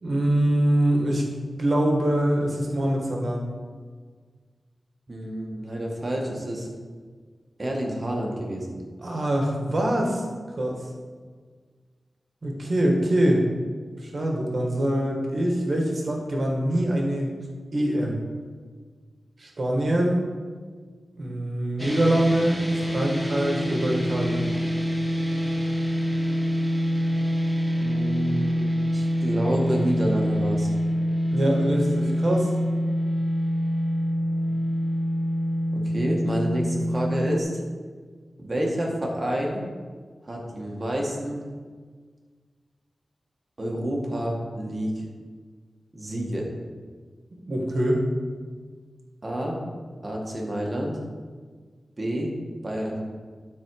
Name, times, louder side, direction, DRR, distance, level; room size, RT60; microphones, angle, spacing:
voice 1, 0.0-1.2 1.6-3.4 9.0-10.2 10.6-10.8 12.4-13.5 14.0-17.3 17.7-18.2 19.4-20.2 21.2-24.5 31.3-32.5 47.5-48.0, right 1 dB, 55° right, 0 dB, 2.0 m, -24 dB
voice 2, 5.1-6.7 7.6-8.8 27.8-28.6 28.9-30.7 35.7-37.6 38.4-39.6 40.2-41.4 43.6-45.0 45.9-46.5 49.2-49.6 50.0-51.0 52.0-52.3 52.6-53.0, right 1 dB, 35° right, -1 dB, 2.0 m, -28 dB
sound 1, 21.8-37.4, equal, 5° right, 1.5 m, -26 dB
12.0 x 4.4 x 4.9 m, 1.5 s
wide cardioid pair, 75°, 0 cm